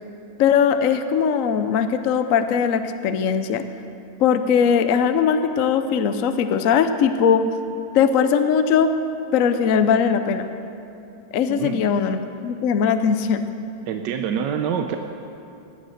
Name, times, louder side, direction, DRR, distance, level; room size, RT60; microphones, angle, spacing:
voice 1, 0.4-3.6 4.2-7.4 7.9-8.9 9.3-10.5 11.3-13.5, left 7 dB, 65° left, 9 dB, 0.8 m, -20 dB
voice 2, 11.5-11.9 13.9-15.0, right 8 dB, 75° right, 5 dB, 1.3 m, -26 dB
16.5 x 10.0 x 6.5 m, 2.7 s
omnidirectional pair, 2.0 m